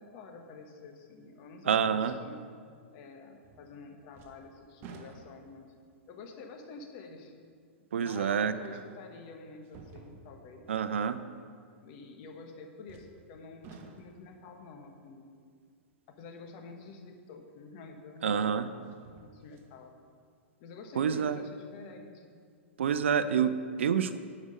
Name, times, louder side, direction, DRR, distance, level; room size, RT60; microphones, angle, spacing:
voice 1, 0.0-2.4 2.9-5.7 6.1-7.3 8.0-10.7 11.8-15.3 16.1-19.9 20.6-22.4, left 4 dB, 45° left, 3 dB, 1.3 m, -49 dB
voice 2, 1.7-2.2 7.9-8.8 10.7-11.2 18.2-18.7 21.0-21.4 22.8-24.2, right 7 dB, 75° right, 13 dB, 0.5 m, -28 dB
sound 1, 3.4-3.8 4.1-5.7 6.4-6.5 8.3-8.4 9.6-10.6 12.9-13.3 13.6-14.3 17.3-17.4 18.9-19.7 20.2-20.3, right 4 dB, 35° right, 0.9 m, -52 dB
11.0 x 5.0 x 5.3 m, 2.1 s
hypercardioid pair, 110°, 7 cm